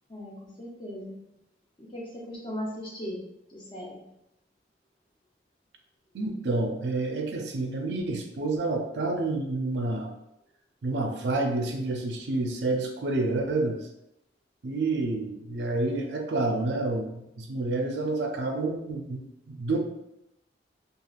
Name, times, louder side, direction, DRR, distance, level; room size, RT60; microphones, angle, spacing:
voice 1, 0.6-1.1 1.9-3.2 3.5-4.0, equal, 25° left, -4 dB, 0.7 m, -37 dB
voice 2, 6.1-10.1 10.8-13.8 14.6-17.1 17.4-19.8, right 2 dB, 70° right, 3 dB, 0.4 m, -29 dB
3.1 x 2.3 x 2.3 m, 0.84 s
head